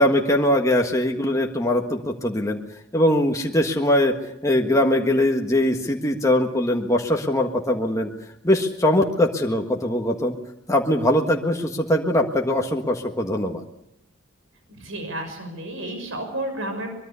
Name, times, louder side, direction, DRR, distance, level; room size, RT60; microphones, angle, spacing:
voice 1, 0.0-2.6 2.9-4.1 4.4-8.1 8.4-10.3 10.7-13.6, left 1 dB, 15° left, 1 dB, 1.6 m, -21 dB
voice 2, 14.7-16.9, right 1 dB, 70° right, 6 dB, 6.3 m, -31 dB
24.0 x 22.0 x 6.9 m, 0.83 s
head